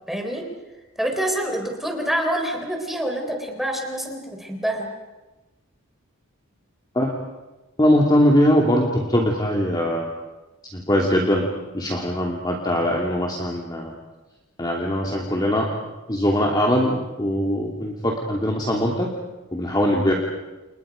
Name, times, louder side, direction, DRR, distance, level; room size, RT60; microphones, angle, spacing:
voice 1, 0.1-0.4 1.0-4.9, right 1 dB, ahead, 2 dB, 3.8 m, -26 dB
voice 2, 7.8-10.1 10.7-11.4 11.7-13.9 14.6-15.7 16.1-19.1 19.5-20.1, equal, 20° left, -1 dB, 2.9 m, -21 dB
30.0 x 30.0 x 5.3 m, 1.1 s
head